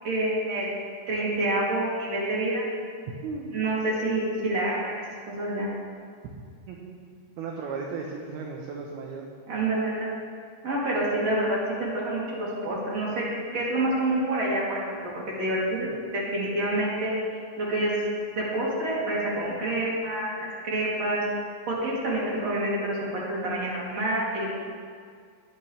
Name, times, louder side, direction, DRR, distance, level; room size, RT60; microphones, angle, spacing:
voice 1, 0.0-2.7 3.5-5.0 5.3-5.7 9.5-10.2 10.6-13.3 13.5-15.1 15.4-17.1 17.6-17.9 18.2-21.2 21.7-24.5, right 1 dB, 40° right, -6 dB, 3.7 m, -27 dB
voice 2, 6.7-7.0 7.4-9.3, right 4 dB, 70° right, 0 dB, 2.6 m, -35 dB
19.5 x 12.5 x 3.4 m, 2.1 s
omnidirectional pair, 5.4 m